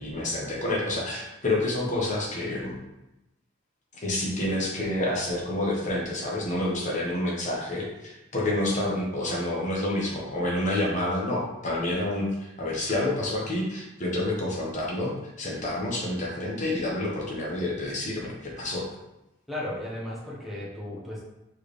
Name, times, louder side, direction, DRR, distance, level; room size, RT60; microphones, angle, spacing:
voice 1, 0.0-2.7 3.9-18.9, left 1 dB, 35° left, -3 dB, 1.0 m, -28 dB
voice 2, 19.5-21.2, left 1 dB, ahead, -6 dB, 1.0 m, -35 dB
4.6 x 3.3 x 3.2 m, 0.94 s
head